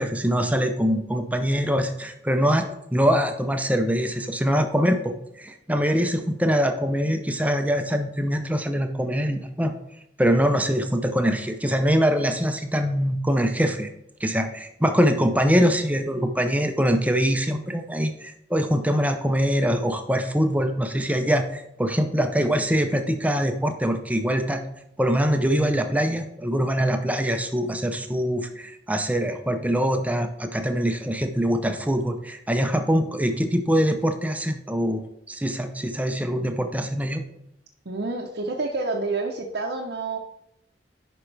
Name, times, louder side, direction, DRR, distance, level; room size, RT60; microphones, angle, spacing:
voice 1, 0.0-9.7 10.2-13.9 14.2-24.6 25.0-35.0 35.3-37.2, equal, 10° right, 6 dB, 0.7 m, -23 dB
voice 2, 37.9-40.2, right 3 dB, 65° right, -1 dB, 0.8 m, -28 dB
10.5 x 5.2 x 3.3 m, 0.78 s
head